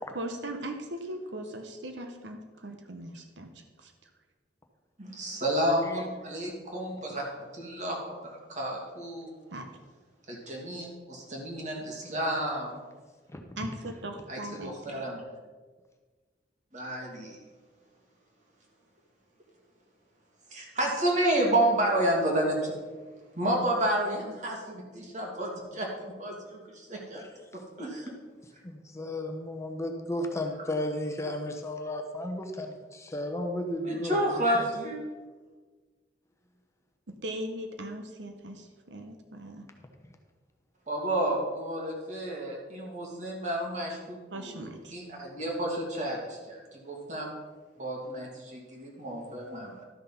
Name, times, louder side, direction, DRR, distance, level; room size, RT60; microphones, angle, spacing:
voice 1, 0.1-3.5 3.8-3.9 9.5-9.7 13.6-15.0 37.2-39.6 44.3-44.9, right 1 dB, 75° right, 5 dB, 1.0 m, -39 dB
voice 2, 5.0-7.3 7.5-8.0 8.2-9.3 10.3-12.8 14.3-15.2 16.7-17.4 20.5-22.7 23.3-27.3 27.8-28.1 33.8-35.0 40.9-47.3 47.8-49.8, right 1 dB, 40° right, -1 dB, 2.6 m, -30 dB
voice 3, 28.6-34.2, left 1 dB, 15° left, 3 dB, 0.9 m, -34 dB
12.5 x 6.5 x 5.7 m, 1.4 s
head